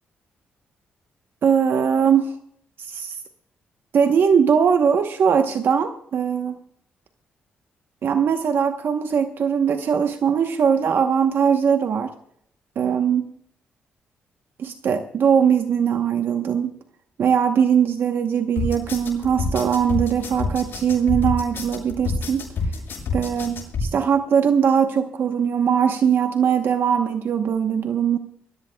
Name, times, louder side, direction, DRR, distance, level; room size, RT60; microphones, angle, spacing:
voice 1, 1.4-2.3 2.8-3.2 3.9-6.6 8.0-12.1 12.8-13.3 14.6-16.7 17.2-22.4 23.1-28.2, right 7 dB, 65° right, 7 dB, 0.9 m, -20 dB
sound 1, 18.6-23.9, left 3 dB, 65° left, 6.9 m, -27 dB
23.5 x 15.5 x 2.2 m, 0.69 s
cardioid pair, 80°, 4 cm